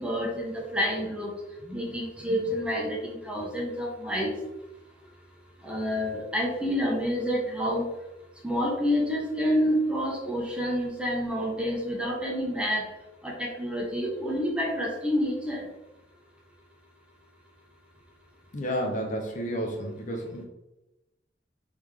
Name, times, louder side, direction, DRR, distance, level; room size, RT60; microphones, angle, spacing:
voice 1, 0.0-1.3 1.6-4.4 5.6-7.9 8.4-12.9 13.2-15.7, equal, 5° right, -2 dB, 0.8 m, -28 dB
voice 2, 18.5-20.4, equal, 45° left, 1 dB, 0.7 m, -31 dB
3.6 x 3.5 x 3.2 m, 0.97 s
head